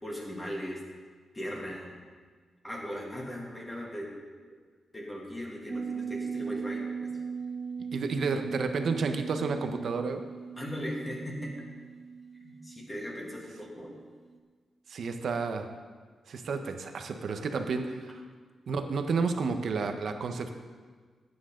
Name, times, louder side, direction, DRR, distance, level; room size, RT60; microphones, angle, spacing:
voice 1, 0.0-0.8 1.3-1.9 2.6-4.1 4.9-6.8 10.6-11.7 12.4-14.0, equal, 15° left, -3 dB, 2.6 m, -38 dB
sound 1, 5.7-14.0 14.3-14.4, right 5 dB, 25° right, 1.0 m, -39 dB
voice 2, 7.9-10.2 14.9-15.7 16.3-18.2 18.7-20.5, right 4 dB, 60° right, 6 dB, 1.1 m, -31 dB
17.5 x 9.2 x 3.9 m, 1.5 s
wide cardioid pair, 150°, 0 cm